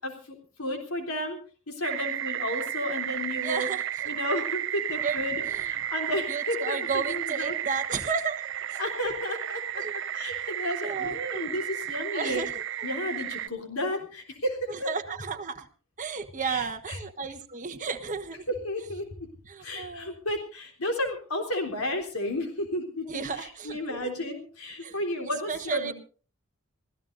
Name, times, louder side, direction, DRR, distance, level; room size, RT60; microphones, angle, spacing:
voice 1, 0.0-1.4 1.7-3.7 4.1-7.6 8.8-9.8 10.1-12.4 12.8-14.9 16.4-17.0 18.6-19.3 19.6-25.9, left 1 dB, 90° left, 3 dB, 3.5 m, -33 dB
sound 1, 1.8-13.5, right 11 dB, 60° right, 0.7 m, -33 dB
voice 2, 3.4-4.2 5.0-5.2 5.4-5.8 6.3-8.4 8.7-8.8 9.8-9.9 10.8-11.4 12.1-12.6 14.7-15.7 16.0-18.5 19.5-20.1 23.1-24.1 24.8-25.0 25.5-25.9, right 5 dB, 35° right, 7 dB, 1.3 m, -33 dB
26.5 x 16.0 x 2.6 m, 0.38 s
head